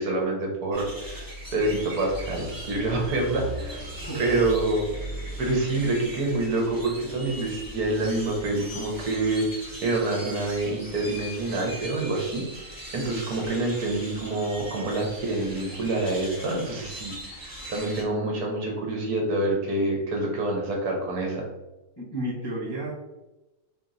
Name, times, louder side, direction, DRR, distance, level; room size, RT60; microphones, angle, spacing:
voice 1, 0.0-4.9 5.4-21.4, right 2 dB, 70° right, 0 dB, 1.4 m, -27 dB
sound 1, 0.7-18.0, right 1 dB, 15° right, 0.9 m, -39 dB
voice 2, 4.1-4.4 13.0-13.6 22.0-22.9, right 1 dB, 15° left, -8 dB, 1.0 m, -33 dB
4.3 x 2.9 x 3.9 m, 1.0 s
omnidirectional pair, 1.7 m